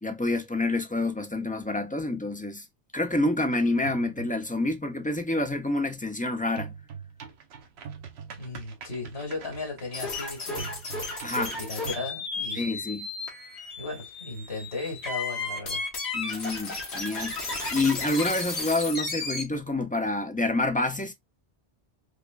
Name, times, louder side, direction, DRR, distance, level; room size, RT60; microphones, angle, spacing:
voice 1, 0.0-2.7 2.9-6.7 11.2-11.5 12.6-13.1 16.1-17.3 17.7-21.1, left 2 dB, 15° left, 0.3 m, -28 dB
sound 1, 3.5-4.6 6.6-12.1, right 7 dB, 80° right, 1.0 m, -43 dB
voice 2, 8.4-10.7 11.3-12.8 13.8-15.9, left 3 dB, 70° left, 2.4 m, -36 dB
sound 2, 9.9-19.4, left 3 dB, 90° left, 1.6 m, -34 dB
4.8 x 2.3 x 2.4 m
omnidirectional pair, 1.1 m